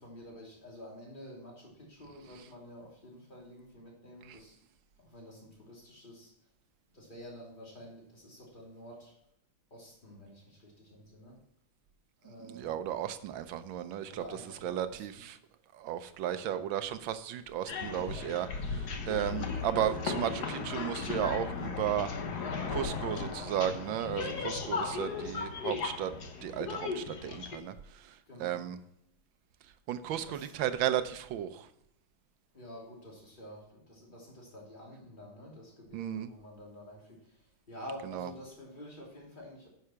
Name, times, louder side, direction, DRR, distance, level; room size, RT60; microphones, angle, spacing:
voice 1, 0.0-4.6 5.0-6.3 6.9-9.1 9.7-11.4 12.2-12.7 14.1-15.2 19.3-19.5 24.2-24.8 28.3-28.6 30.1-30.5 32.5-39.7, left 1 dB, 20° left, -3 dB, 3.3 m, -49 dB
voice 2, 12.5-14.2 14.6-15.4 15.7-22.1 22.7-24.3 24.7-26.1 26.4-28.8 29.9-31.7 35.9-36.3 38.1-38.3, right 11 dB, 70° right, 11 dB, 1.4 m, -34 dB
sound 1, 17.7-27.6, left 4 dB, 55° left, 1.5 m, -36 dB
9.7 x 6.8 x 5.7 m, 0.77 s
omnidirectional pair, 2.3 m